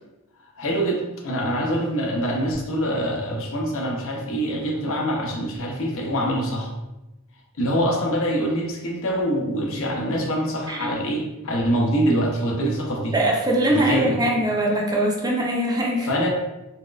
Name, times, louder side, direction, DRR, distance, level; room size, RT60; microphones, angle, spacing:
voice 1, 0.6-6.7 7.6-13.1 13.7-14.2 16.0-16.3, equal, 65° left, 0 dB, 0.7 m, -24 dB
voice 2, 13.1-16.1, right 1 dB, 20° right, -2 dB, 0.6 m, -22 dB
4.1 x 2.4 x 2.4 m, 1.0 s
head